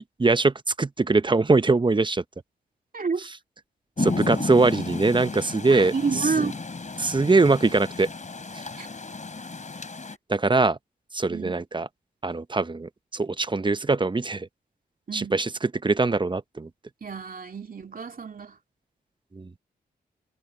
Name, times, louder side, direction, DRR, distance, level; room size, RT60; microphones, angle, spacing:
voice 1, 0.0-2.2 4.0-5.9 6.4-6.5 7.0-8.1 8.5-8.6 10.3-10.8 11.1-11.9 12.2-14.5 15.1-16.7 19.3-19.5, right 3 dB, 25° right, 0.8 m, -22 dB
voice 2, 2.9-3.3 4.0-4.5 5.7-6.6 8.8-8.9 11.3-11.6 15.1-15.4 17.0-18.6, right 5 dB, 50° right, 2.6 m, -30 dB
Rain, 4.0-10.2, left 3 dB, 45° left, 3.7 m, -33 dB
cardioid pair, 50°, 18 cm